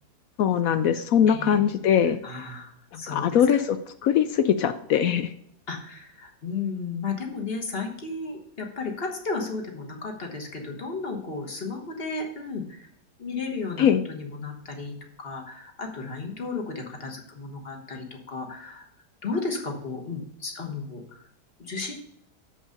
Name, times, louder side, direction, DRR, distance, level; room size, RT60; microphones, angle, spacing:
voice 1, 0.4-2.2 2.9-5.3 13.8-14.0, left 8 dB, 70° left, 10 dB, 0.8 m, -21 dB
voice 2, 1.3-1.6 2.2-3.6 5.7-12.9 13.2-18.9 19.2-21.2 21.6-21.9, left 4 dB, 35° left, 2 dB, 1.5 m, -34 dB
7.0 x 5.5 x 6.4 m, 0.72 s
omnidirectional pair, 1.8 m